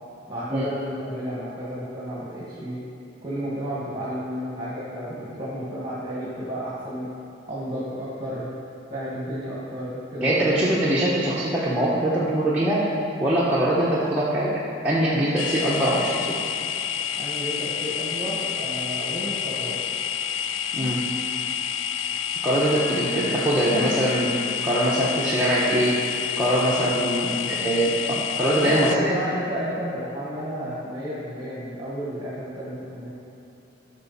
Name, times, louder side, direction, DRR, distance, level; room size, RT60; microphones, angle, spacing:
voice 1, 0.3-2.8 3.2-7.1 7.5-8.5 8.9-10.6 17.1-19.7 26.5-26.9 27.2-27.8 28.6-33.1, equal, 25° right, -8 dB, 1.9 m, -32 dB
voice 2, 10.2-12.8 13.2-14.5 14.8-16.4 20.7-21.0 22.4-24.3 24.6-26.0 26.4-27.3 27.6-29.2, right 1 dB, 5° right, -9 dB, 1.1 m, -22 dB
sound 1, 15.4-29.0, left 8 dB, 85° left, 0.3 m, -29 dB
13.5 x 5.9 x 4.2 m, 2.8 s
head